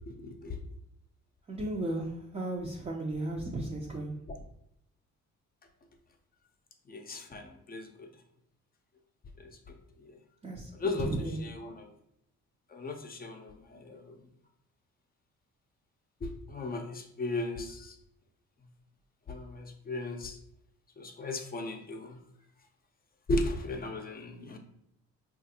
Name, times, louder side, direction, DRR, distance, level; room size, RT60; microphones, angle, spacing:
voice 1, 0.2-0.6 6.9-7.9 9.7-9.8 10.8-11.1 11.4-11.9 12.7-13.5 13.8-14.1 16.5-17.9 19.3-20.4 21.0-22.2 23.3-24.6, left 2 dB, 30° left, 4 dB, 0.5 m, -36 dB
voice 2, 1.5-4.1 10.4-11.4, right 2 dB, 20° right, -2 dB, 0.4 m, -35 dB
3.2 x 2.4 x 2.7 m, 0.77 s
cardioid pair, 90°, 30 cm